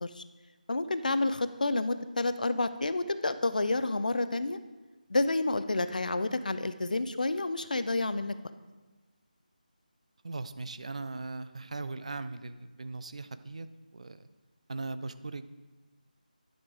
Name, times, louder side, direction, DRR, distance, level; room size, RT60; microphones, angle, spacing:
voice 1, 0.7-4.6 5.1-8.3, left 2 dB, 65° left, 11 dB, 0.6 m, -29 dB
voice 2, 10.2-13.7 13.9-14.2 14.7-15.5, right 3 dB, 50° right, 12 dB, 0.5 m, -39 dB
10.5 x 5.2 x 4.9 m, 1.2 s
figure-of-eight pair, 165°, 5 cm